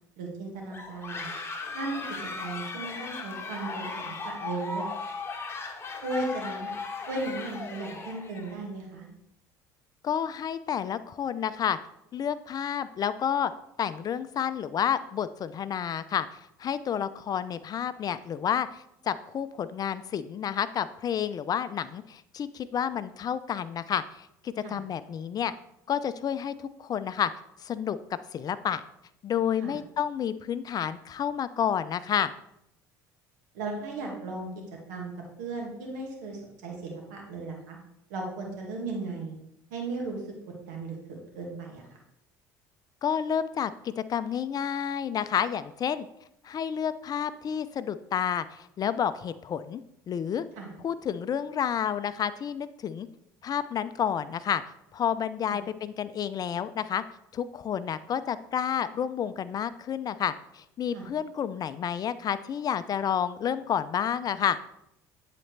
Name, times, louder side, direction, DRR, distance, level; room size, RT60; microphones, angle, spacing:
voice 1, 0.2-1.3 1.7-2.0 2.4-4.8 6.0-6.7 7.1-9.1 24.6-24.8 29.6-29.8 33.5-34.5 34.9-35.1 35.4-37.8 38.1-39.4 39.7-40.2 40.7-41.8 50.6-50.7 55.5-55.6 60.9-61.1, right 2 dB, 85° right, 0 dB, 2.0 m, -36 dB
sound 1, 0.7-8.6, left 3 dB, 25° left, 1.3 m, -37 dB
voice 2, 10.0-11.8 12.1-13.5 13.8-25.5 25.9-27.3 27.6-28.0 28.3-28.8 29.2-32.3 43.0-46.1 46.4-49.8 50.1-50.4 50.8-53.1 53.4-54.6 54.9-57.0 57.3-64.6, left 8 dB, 40° left, 14 dB, 0.5 m, -30 dB
10.5 x 4.2 x 3.3 m, 0.80 s
hypercardioid pair, 75°, 10 cm